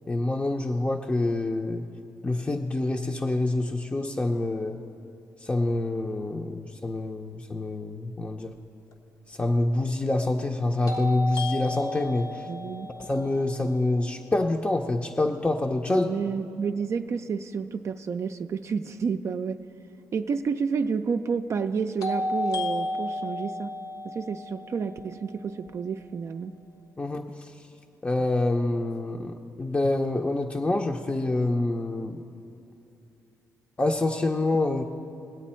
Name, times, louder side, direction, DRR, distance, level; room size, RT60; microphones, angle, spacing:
voice 1, 0.1-1.9 2.2-4.8 5.4-8.5 9.3-12.4 13.0-16.1 27.0-27.5 28.0-32.2 33.8-34.8, left 2 dB, 20° left, 3 dB, 0.6 m, -26 dB
sound 1, 8.9-9.0 10.9-14.8 22.0-26.0, left 1 dB, 70° left, 1.1 m, -34 dB
voice 2, 12.5-12.9 15.9-19.6 20.1-23.7 24.0-26.5, right 5 dB, 50° right, 6 dB, 0.4 m, -30 dB
20.5 x 8.2 x 4.3 m, 2.8 s
cardioid pair, 80°, 6 cm